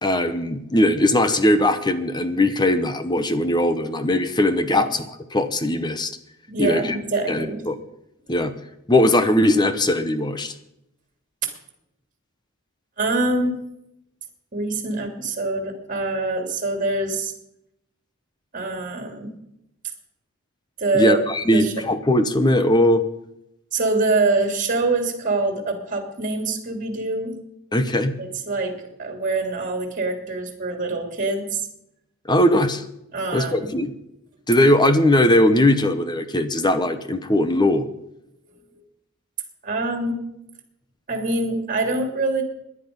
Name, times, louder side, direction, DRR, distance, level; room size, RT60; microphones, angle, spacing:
voice 1, 0.0-5.1 5.3-6.2 6.6-7.0 7.3-7.8 8.3-8.5 8.9-10.5 20.9-23.0 27.7-28.2 32.3-32.8 33.3-33.9 34.5-37.9, left 1 dB, 20° left, 10 dB, 0.9 m, -19 dB
voice 2, 6.5-7.6 11.4-11.5 13.0-13.6 14.5-17.3 18.5-19.3 20.8-21.2 21.5-21.7 23.7-27.4 28.2-31.7 33.1-33.7 39.6-40.2 41.1-42.4, right 2 dB, 40° right, 4 dB, 2.9 m, -24 dB
18.0 x 11.0 x 5.3 m, 0.83 s
head